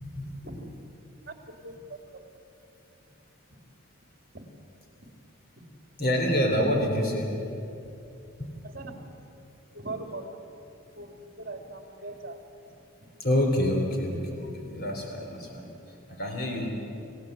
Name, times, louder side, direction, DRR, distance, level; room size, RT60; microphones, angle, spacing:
voice 1, 1.6-2.0 4.3-4.4 8.6-8.9 9.7-10.4 11.0-12.4, right 2 dB, 45° right, 4 dB, 2.9 m, -40 dB
voice 2, 6.0-7.4 8.4-8.5 13.2-15.7 16.2-16.7, left 1 dB, 45° left, 2 dB, 3.4 m, -27 dB
28.5 x 17.0 x 8.1 m, 2.7 s
head